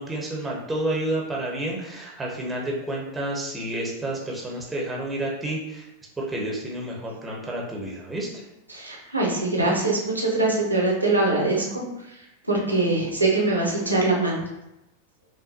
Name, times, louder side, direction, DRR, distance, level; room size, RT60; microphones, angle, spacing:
voice 1, 0.0-5.9 6.2-8.4, right 1 dB, 10° right, -3 dB, 0.9 m, -30 dB
voice 2, 8.7-11.6 12.5-14.4, right 2 dB, 85° right, -2 dB, 0.9 m, -22 dB
5.5 x 2.2 x 2.7 m, 0.91 s
figure-of-eight pair, 90°, 0 cm